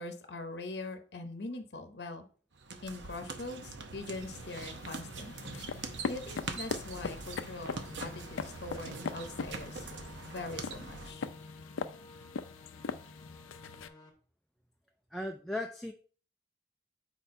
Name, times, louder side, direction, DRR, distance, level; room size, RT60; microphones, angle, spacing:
voice 1, 0.0-2.3 2.8-5.3 6.1-9.9 10.2-11.3, left 2 dB, 55° left, 7 dB, 0.8 m, -42 dB
sound 1, 2.5-11.1, right 4 dB, 65° right, 0.8 m, -43 dB
sound 2, 4.0-13.9, left 5 dB, 90° left, 0.4 m, -41 dB
sound 3, 7.5-14.1, left 2 dB, 20° left, 1.1 m, -53 dB
voice 2, 15.1-15.9, left 1 dB, ahead, 2 dB, 0.3 m, -36 dB
4.5 x 4.3 x 5.2 m, 0.41 s
head